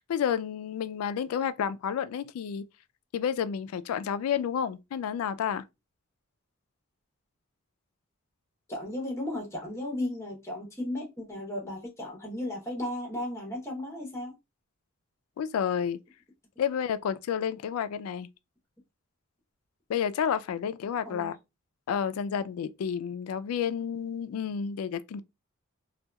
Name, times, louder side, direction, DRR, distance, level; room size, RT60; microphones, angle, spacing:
voice 1, 0.1-2.6 3.1-5.6 15.4-16.0 16.6-18.3 19.9-21.4 21.9-25.2, left 8 dB, 85° left, 0.3 m, -30 dB
voice 2, 8.7-14.3 21.0-21.3, left 1 dB, 15° left, 0.9 m, -35 dB
2.8 x 2.3 x 2.2 m
head